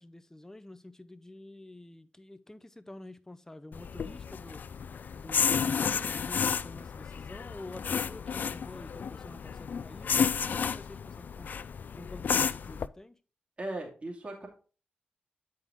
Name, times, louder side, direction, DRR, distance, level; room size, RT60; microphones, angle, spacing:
voice 1, 0.0-4.6 5.1-11.5 12.0-13.2, left 1 dB, 15° left, 0.6 m, -48 dB
sound 1, 3.7-12.9, left 6 dB, 60° left, 0.3 m, -32 dB
voice 2, 13.6-14.5, right 1 dB, 35° right, 2.4 m, -37 dB
7.8 x 5.5 x 3.6 m
cardioid pair, 60°, 4 cm